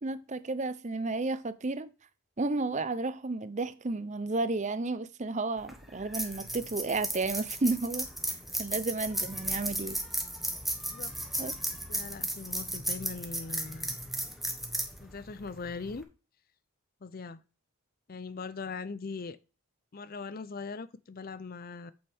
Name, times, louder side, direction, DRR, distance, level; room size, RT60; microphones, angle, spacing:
voice 1, 0.0-1.9 2.4-8.1 8.6-10.0 11.4-11.5, right 3 dB, 35° right, 0.6 m, -32 dB
sound 1, 5.6-16.0, right 1 dB, ahead, 1.2 m, -35 dB
voice 2, 11.9-13.9 15.0-16.1 17.0-17.4 18.1-19.4 19.9-21.9, left 4 dB, 45° left, 0.5 m, -40 dB
8.7 x 7.0 x 3.5 m
head